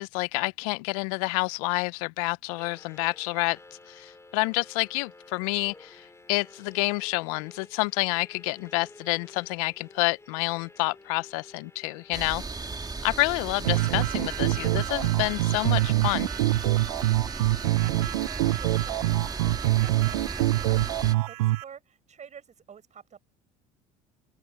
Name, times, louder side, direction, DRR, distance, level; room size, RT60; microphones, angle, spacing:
voice 1, 0.0-3.6 3.9-6.0 6.3-12.4 13.0-16.3, left 27 dB, 70° left, 1.0 m, -28 dB
sound 1, 2.6-16.3, left 2 dB, 15° left, 7.5 m, -52 dB
sound 2, 12.1-21.1, right 4 dB, 20° right, 2.9 m, -36 dB
sound 3, 13.6-21.6, right 18 dB, 80° right, 0.4 m, -25 dB
voice 2, 17.6-23.2, right 7 dB, 40° right, 7.8 m, -49 dB
open air
hypercardioid pair, 65°, 19 cm